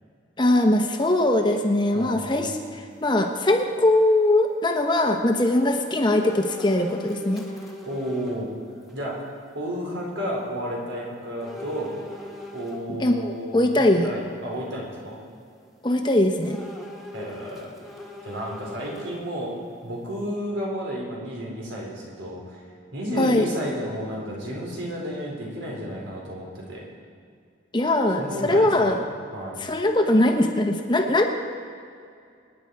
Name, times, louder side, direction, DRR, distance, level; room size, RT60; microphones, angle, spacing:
voice 1, 0.4-7.4 12.9-14.1 15.8-16.6 23.2-23.5 27.7-29.0 29.6-31.3, left 1 dB, 25° left, 4 dB, 1.0 m, -21 dB
voice 2, 1.9-2.5 7.8-8.5 8.9-9.1 9.5-11.9 12.5-15.2 17.1-17.7 18.2-19.5 19.8-22.6 22.9-26.8 28.2-29.5, equal, 75° right, -3 dB, 4.4 m, -32 dB
sound 1, 6.2-8.5 8.9-9.0 11.4-12.8 16.4-19.5 19.9-20.0, left 1 dB, ahead, 1.8 m, -40 dB
25.5 x 10.0 x 4.8 m, 2.3 s
head